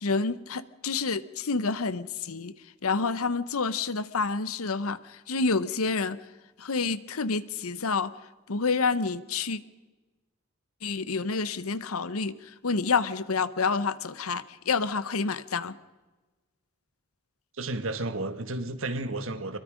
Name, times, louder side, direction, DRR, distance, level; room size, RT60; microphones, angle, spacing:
voice 1, 0.0-2.5 2.8-6.2 6.6-8.1 8.5-9.6 10.8-15.8, left 4 dB, 80° left, 15 dB, 0.9 m, -28 dB
voice 2, 17.6-19.6, right 2 dB, 65° right, 9 dB, 1.5 m, -32 dB
23.0 x 22.0 x 5.2 m, 1.2 s
head